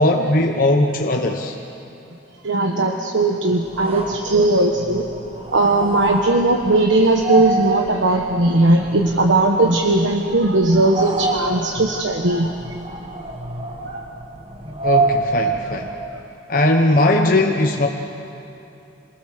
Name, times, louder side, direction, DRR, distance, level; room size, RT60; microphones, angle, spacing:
voice 1, 0.0-1.5 14.8-15.9 16.5-17.9, left 1 dB, 45° left, 1 dB, 1.1 m, -18 dB
voice 2, 2.4-5.0 5.5-12.5 13.8-14.0 16.1-16.2, right 2 dB, 70° right, 2 dB, 1.3 m, -18 dB
sound 1, 3.6-16.2, right 3 dB, 30° right, 1.5 m, -28 dB
27.5 x 20.0 x 6.8 m, 2.8 s
head